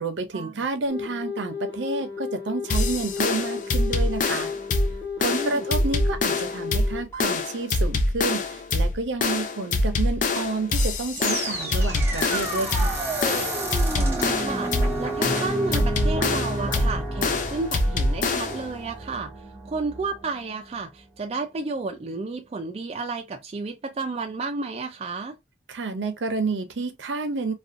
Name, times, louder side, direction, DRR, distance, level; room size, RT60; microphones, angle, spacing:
voice 1, 0.0-4.5 5.2-13.0 25.7-27.5, right 3 dB, 80° right, 0.6 m, -30 dB
sound 1, 0.9-7.5 9.3-9.4, left 5 dB, 15° left, 1.0 m, -34 dB
sound 2, 2.7-18.7, left 2 dB, 45° left, 0.4 m, -25 dB
voice 2, 5.3-5.7 13.9-19.3 19.7-25.4, right 3 dB, 35° right, 0.3 m, -32 dB
sound 3, 11.1-20.3, right 2 dB, 15° right, 0.8 m, -30 dB
2.5 x 2.3 x 2.5 m
head